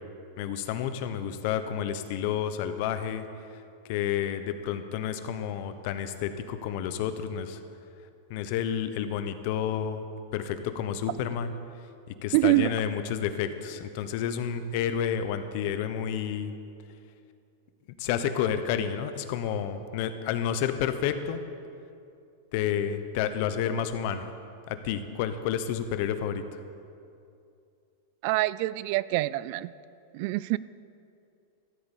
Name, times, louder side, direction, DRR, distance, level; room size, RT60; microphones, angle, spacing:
voice 1, 0.4-3.3 3.9-7.6 8.3-10.0 10.3-11.5 12.1-16.5 18.0-21.4 22.5-24.3 24.7-26.4, left 9 dB, 50° left, 10 dB, 1.0 m, -30 dB
voice 2, 12.3-12.7 28.2-29.7 30.1-30.6, right 19 dB, 50° right, 19 dB, 0.3 m, -25 dB
14.0 x 8.2 x 8.3 m, 2.6 s
supercardioid pair, 150°, 0 cm